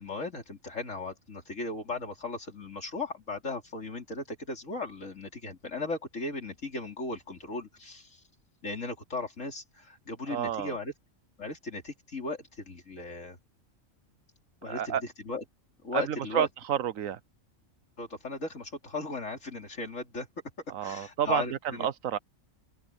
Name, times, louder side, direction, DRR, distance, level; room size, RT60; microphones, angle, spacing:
voice 1, 0.0-8.2 8.6-10.9 11.4-13.4 14.6-15.0 15.2-15.4 15.8-16.5 18.0-20.3 20.8-21.9, left 3 dB, 70° left, 3.9 m, -37 dB
voice 2, 10.3-10.8 14.7-15.0 15.9-17.2 20.7-22.2, right 10 dB, 80° right, 1.2 m, -30 dB
open air
omnidirectional pair, 1.4 m